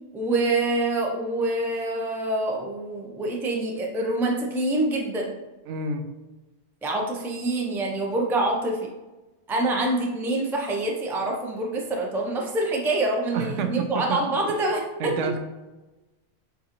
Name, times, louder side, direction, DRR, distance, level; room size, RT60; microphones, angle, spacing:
voice 1, 0.1-5.3 6.8-8.9 9.5-15.4, right 2 dB, 5° right, -1 dB, 0.3 m, -26 dB
voice 2, 5.7-6.1 13.3-14.2 15.0-15.4, right 4 dB, 80° right, 7 dB, 0.9 m, -29 dB
6.9 x 2.5 x 2.9 m, 1.1 s
omnidirectional pair, 1.2 m